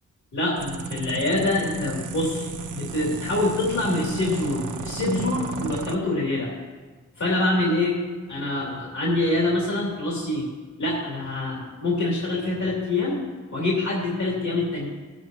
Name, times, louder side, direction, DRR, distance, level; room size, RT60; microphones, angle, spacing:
voice 1, 0.3-6.5 7.2-8.0 8.3-10.5 10.8-13.2 13.5-14.9, left 2 dB, 70° left, -4 dB, 2.8 m, -25 dB
sound 1, 0.6-6.0, right 4 dB, 80° right, 0.8 m, -34 dB
20.0 x 8.2 x 3.0 m, 1.4 s
wide cardioid pair, 125°, 30 cm